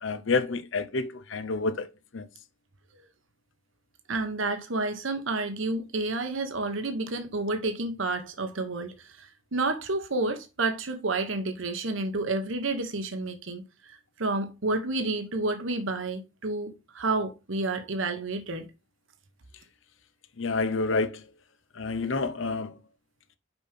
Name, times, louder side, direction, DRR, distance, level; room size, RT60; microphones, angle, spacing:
voice 1, 0.0-1.9 2.1-2.3 20.4-21.2 21.8-22.8, left 3 dB, 70° left, 0.7 m, -28 dB
voice 2, 4.1-18.7, right 2 dB, 70° right, 1.1 m, -30 dB
6.1 x 5.1 x 3.5 m
head